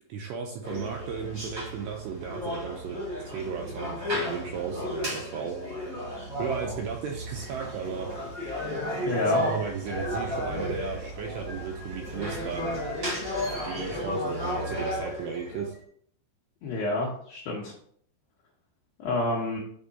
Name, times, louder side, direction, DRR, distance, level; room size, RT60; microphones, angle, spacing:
voice 1, 0.1-3.0 3.3-5.6 6.4-8.1 9.1-12.8 13.7-15.7, right 6 dB, 85° right, 1 dB, 2.4 m, -35 dB
sound 1, 0.6-15.8, left 1 dB, 40° right, 1.1 m, -33 dB
voice 2, 9.1-9.4 16.6-17.7 19.0-19.6, left 2 dB, 85° left, -2 dB, 2.0 m, -28 dB
9.0 x 3.5 x 4.0 m, 0.63 s
omnidirectional pair, 5.6 m